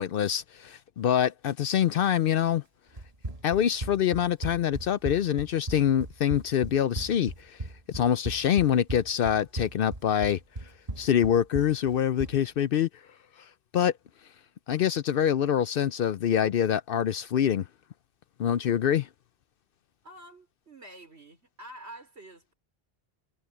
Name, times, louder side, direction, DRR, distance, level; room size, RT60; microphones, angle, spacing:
voice 1, 0.0-2.6 3.4-7.6 7.9-10.4 11.0-12.9 13.7-13.9 14.7-17.7 18.4-19.1, left 9 dB, 65° left, 0.7 m, -25 dB
Run, 3.0-12.4, right 1 dB, 35° right, 1.6 m, -37 dB
voice 2, 20.0-22.5, right 1 dB, 70° right, 5.0 m, -47 dB
omnidirectional pair, 1.1 m